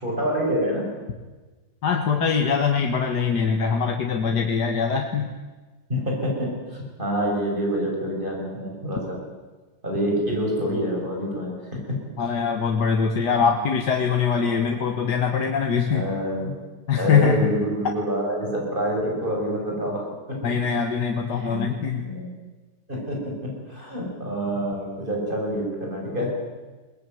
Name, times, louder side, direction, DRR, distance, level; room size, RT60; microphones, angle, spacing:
voice 1, 0.0-0.9 5.9-9.2 9.8-12.0 15.9-16.5 16.9-20.0 20.3-20.6 21.3-21.6 22.0-22.3 22.9-23.2 23.7-26.3, equal, 30° right, -2 dB, 6.3 m, -27 dB
voice 2, 1.8-5.3 12.2-16.0 16.9-17.5 20.4-22.1, left 6 dB, 75° left, 4 dB, 2.0 m, -23 dB
22.0 x 18.5 x 9.3 m, 1.3 s
omnidirectional pair, 1.8 m